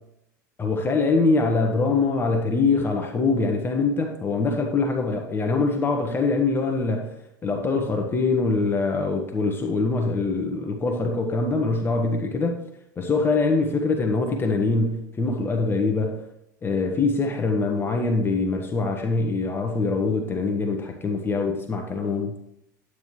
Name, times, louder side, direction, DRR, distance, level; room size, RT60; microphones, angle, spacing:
voice 1, 0.6-7.1 7.4-12.6 13.0-16.2 16.6-22.3, left 3 dB, 20° left, 2 dB, 1.0 m, -23 dB
9.5 x 9.0 x 3.2 m, 0.80 s
figure-of-eight pair, 80°, 10 cm